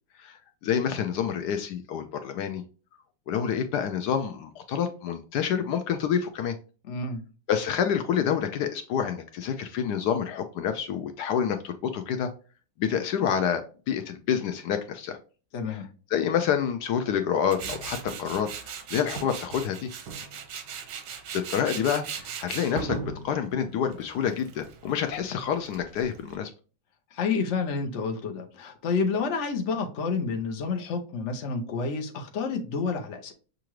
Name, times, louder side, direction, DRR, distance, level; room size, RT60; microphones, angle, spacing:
voice 1, 0.2-2.6 3.3-6.6 7.5-12.3 12.8-15.2 15.7-15.8 16.1-18.5 18.9-19.9 21.3-26.5, left 8 dB, 75° left, 7 dB, 1.1 m, -28 dB
voice 2, 6.9-7.2 15.5-15.9 27.1-33.3, left 4 dB, 50° left, 4 dB, 1.0 m, -29 dB
Tools, 17.5-26.3, right 6 dB, 90° right, 1.5 m, -38 dB
6.7 x 2.5 x 3.0 m, 0.35 s
omnidirectional pair, 1.8 m